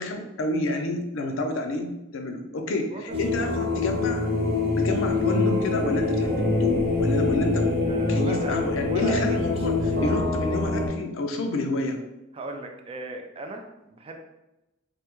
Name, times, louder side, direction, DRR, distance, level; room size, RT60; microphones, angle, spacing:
voice 1, 0.0-4.3 4.7-7.8 8.1-12.0, left 2 dB, 70° left, 4 dB, 0.4 m, -29 dB
sound 1, 3.1-10.9, left 3 dB, 50° right, 0.7 m, -25 dB
sound 2, 5.1-10.4, right 1 dB, 85° right, 0.9 m, -45 dB
voice 2, 7.8-10.1 12.3-14.2, right 2 dB, 30° right, 4 dB, 0.3 m, -38 dB
3.3 x 2.2 x 2.9 m, 0.96 s
head